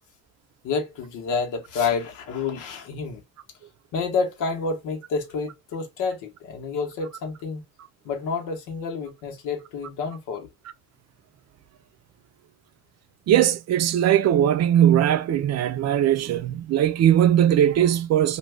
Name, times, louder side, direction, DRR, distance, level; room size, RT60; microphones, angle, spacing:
voice 1, 0.6-3.2 3.9-7.6 8.0-10.5, left 4 dB, 90° left, 0.9 m, -29 dB
voice 2, 13.3-18.4, right 10 dB, 60° right, 0.5 m, -19 dB
2.6 x 2.2 x 3.2 m
cardioid pair, 90°, 30 cm